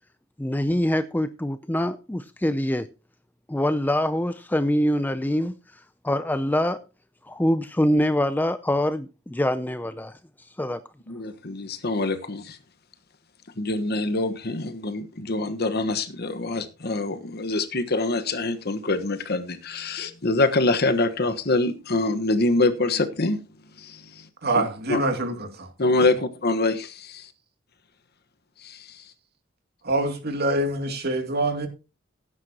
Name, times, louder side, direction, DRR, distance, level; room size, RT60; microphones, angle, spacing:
voice 1, 0.4-2.9 3.5-6.8 7.2-10.8, left 1 dB, 10° left, 0.5 m, -25 dB
voice 2, 11.1-12.6 13.6-23.4 23.8-24.3 24.5-25.0 25.8-27.3 28.6-28.9, left 2 dB, 55° left, 1.3 m, -25 dB
voice 3, 24.4-25.7 29.8-31.7, right 2 dB, 55° right, 2.5 m, -25 dB
16.5 x 9.8 x 2.9 m
head